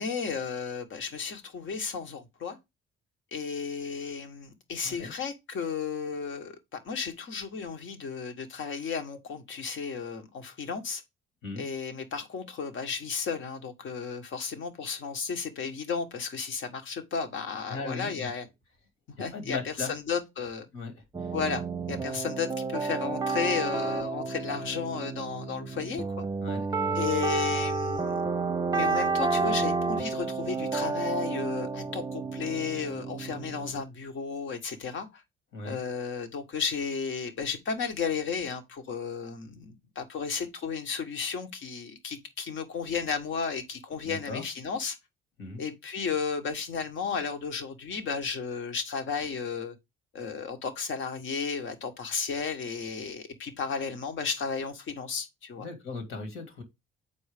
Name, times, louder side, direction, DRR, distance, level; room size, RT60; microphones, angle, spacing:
voice 1, 0.0-2.6 3.3-6.6 6.8-11.0 11.6-18.5 19.1-20.7 21.3-26.3 26.9-28.3 28.7-35.2 35.6-45.0 45.6-49.7 50.1-55.7, left 5 dB, 65° left, 1.3 m, -33 dB
voice 2, 17.7-18.3 19.3-19.9 20.7-21.3 26.4-27.1 35.5-35.8 44.0-44.4 45.4-45.6 55.6-56.6, left 3 dB, 80° left, 2.2 m, -38 dB
sound 1, 21.1-33.8, right 4 dB, 20° right, 0.6 m, -31 dB
7.0 x 4.5 x 3.4 m
cardioid pair, 105°, 21 cm